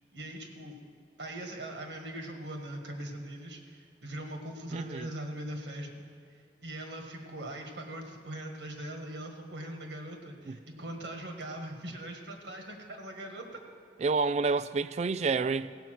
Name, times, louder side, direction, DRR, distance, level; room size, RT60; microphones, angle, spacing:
voice 1, 0.1-0.8 1.2-5.9 6.6-13.5, right 1 dB, 80° right, 1.6 m, -41 dB
voice 2, 4.7-5.1 10.5-10.6 14.0-15.7, right 4 dB, 40° right, 0.3 m, -29 dB
16.5 x 5.6 x 7.6 m
head